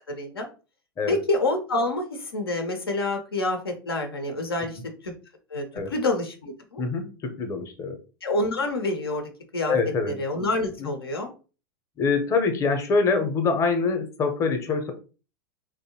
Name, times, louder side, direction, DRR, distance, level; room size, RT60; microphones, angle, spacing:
voice 1, 0.1-0.5 1.1-5.1 5.5-6.8 8.2-9.8 10.2-11.3, left 2 dB, 90° left, 4 dB, 0.6 m, -27 dB
voice 2, 6.8-8.0 9.7-10.1 10.8-10.9 12.0-14.9, left 4 dB, 25° left, 6 dB, 0.6 m, -25 dB
2.6 x 2.1 x 2.8 m, 0.34 s
hypercardioid pair, 95°, 12 cm